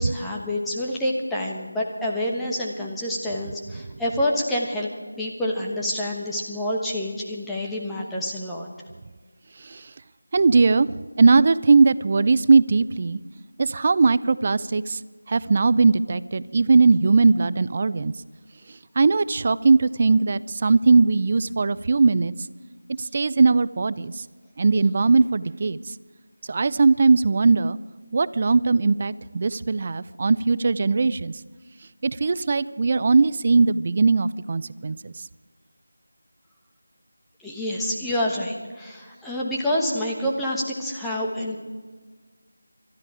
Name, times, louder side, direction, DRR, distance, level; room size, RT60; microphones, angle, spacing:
voice 1, 0.0-4.9 5.2-8.7 37.4-41.6, left 1 dB, 5° left, -4 dB, 1.2 m, -27 dB
voice 2, 9.6-9.9 10.3-13.2 13.6-15.0 15.3-18.1 19.0-22.3 23.0-24.2 24.6-25.8 26.5-27.8 28.1-31.4 32.0-35.1, right 4 dB, 30° right, 17 dB, 0.4 m, -19 dB
21.0 x 13.0 x 4.9 m, 1.4 s
figure-of-eight pair, 170°, 0 cm